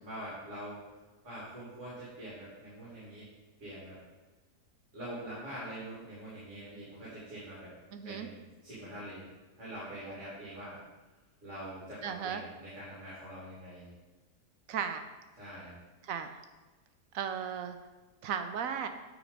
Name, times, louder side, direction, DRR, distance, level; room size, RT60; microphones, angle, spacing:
voice 1, 0.0-0.8 1.2-3.2 3.6-4.0 4.9-7.7 8.0-9.2 9.6-10.8 11.4-13.9 15.4-15.7, right 1 dB, 50° right, -9 dB, 2.6 m, -44 dB
voice 2, 7.9-8.3 12.0-12.4 14.7-15.1 16.0-16.4 17.1-17.8 18.2-18.9, right 7 dB, 70° right, 8 dB, 0.9 m, -35 dB
9.0 x 4.0 x 5.2 m, 1.2 s
omnidirectional pair, 1.6 m